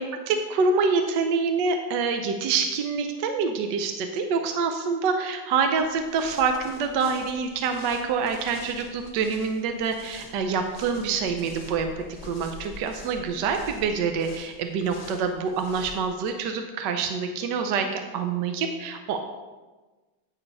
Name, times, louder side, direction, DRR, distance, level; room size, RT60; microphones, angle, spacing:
voice 1, 0.3-19.2, right 5 dB, 70° right, 6 dB, 1.2 m, -26 dB
sound 1, 5.8-16.3, left 3 dB, 30° left, 1.2 m, -46 dB
9.6 x 4.9 x 5.4 m, 1.2 s
omnidirectional pair, 2.2 m